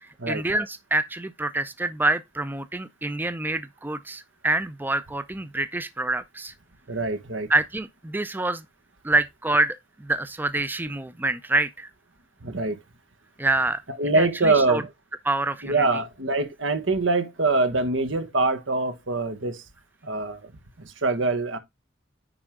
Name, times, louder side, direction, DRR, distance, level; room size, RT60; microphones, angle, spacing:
voice 1, 0.0-6.5 7.5-8.6 9.0-11.9 13.4-13.8 14.1-14.8 15.3-15.8, right 2 dB, 10° right, 0.5 m, -26 dB
voice 2, 6.9-7.5 12.4-12.8 14.0-14.9 15.6-19.6 20.0-20.5 20.8-21.6, right 3 dB, 85° right, 1.4 m, -24 dB
9.8 x 4.6 x 3.6 m
head